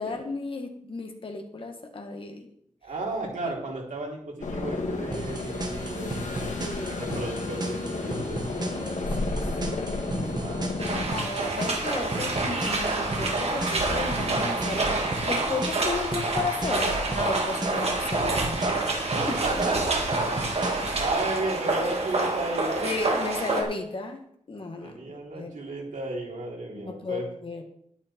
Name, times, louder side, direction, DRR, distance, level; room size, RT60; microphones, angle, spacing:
voice 1, 0.0-2.5 3.2-3.5 6.3-7.1 8.6-9.4 11.0-14.9 15.2-18.8 22.8-24.2 24.5-25.0 25.4-25.6 26.7-27.6, left 3 dB, 45° left, 3 dB, 1.7 m, -34 dB
voice 2, 2.8-6.3 6.9-8.9 10.3-10.7 11.0-11.3 19.2-23.0 24.8-27.3, right 2 dB, 90° right, -2 dB, 3.4 m, -34 dB
sound 1, 4.4-11.1, left 2 dB, 70° left, 2.0 m, -32 dB
sound 2, 5.1-21.1, right 2 dB, 30° right, 1.7 m, -37 dB
sound 3, 10.8-23.6, right 2 dB, 55° right, 2.2 m, -27 dB
11.0 x 9.8 x 4.4 m, 0.67 s
wide cardioid pair, 155°, 13 cm